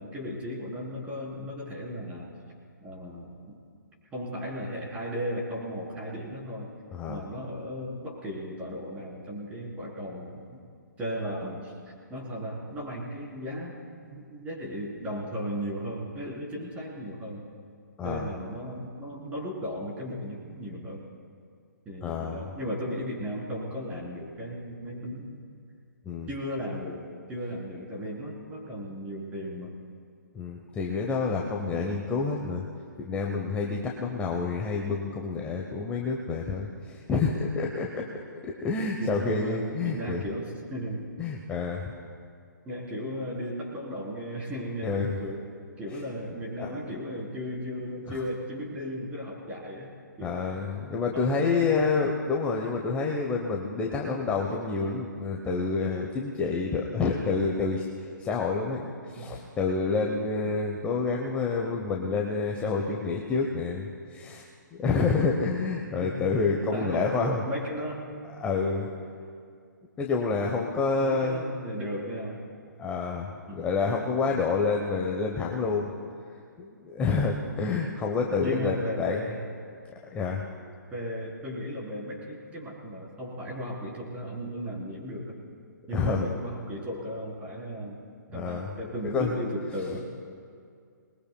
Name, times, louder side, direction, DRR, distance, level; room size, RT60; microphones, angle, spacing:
voice 1, 0.0-2.3 2.8-3.6 4.1-6.7 7.1-10.6 11.0-11.7 12.1-13.8 14.1-17.4 18.0-21.1 21.9-25.4 26.3-29.8 39.0-41.1 42.6-45.5 45.8-49.9 50.2-50.7 51.1-51.8 59.2-59.5 66.0-66.3 66.7-68.2 71.0-72.4 73.5-73.7 78.4-79.5 80.9-85.4 85.9-88.0 88.3-90.1, equal, 15° right, -4 dB, 3.6 m, -35 dB
voice 2, 6.9-7.2 18.0-18.3 22.0-22.5 26.0-26.3 30.3-32.6 33.0-38.1 38.4-40.2 41.2-41.9 44.8-45.2 45.9-46.0 46.3-46.7 48.1-48.2 50.2-64.5 64.8-67.4 68.4-68.9 70.0-71.4 72.8-75.9 76.6-79.3 80.1-80.4 85.9-86.3 88.3-88.7 89.1-89.4, left 4 dB, 10° left, 0 dB, 0.9 m, -28 dB
27.5 x 20.5 x 2.3 m, 2.3 s
figure-of-eight pair, 140°, 10 cm